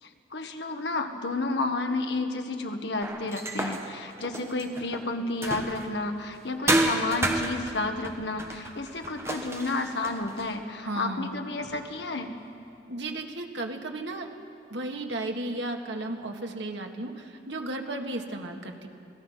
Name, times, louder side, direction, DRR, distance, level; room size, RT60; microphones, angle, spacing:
voice 1, 0.0-12.3, left 2 dB, 70° left, 5 dB, 1.5 m, -31 dB
sound 1, 3.0-6.0 6.7-10.5, right 1 dB, 15° right, 1.3 m, -31 dB
voice 2, 10.8-11.3 11.6-11.8 12.9-14.4 14.7-18.9, right 2 dB, 85° right, 3 dB, 1.9 m, -34 dB
26.5 x 18.0 x 5.8 m, 2.6 s
head